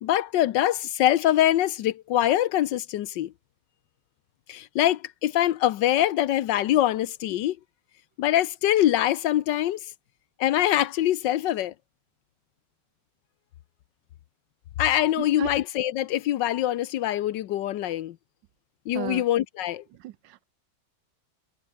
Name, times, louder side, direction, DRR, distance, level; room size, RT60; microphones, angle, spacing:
voice 1, 0.0-3.3 4.5-7.6 8.2-9.9 10.4-11.7 14.8-18.2 18.9-19.8, left 13 dB, 85° left, 1.4 m, -24 dB
voice 2, 15.2-15.5 18.9-19.2 20.0-20.4, right 15 dB, 85° right, 1.3 m, -35 dB
omnidirectional pair, 1.9 m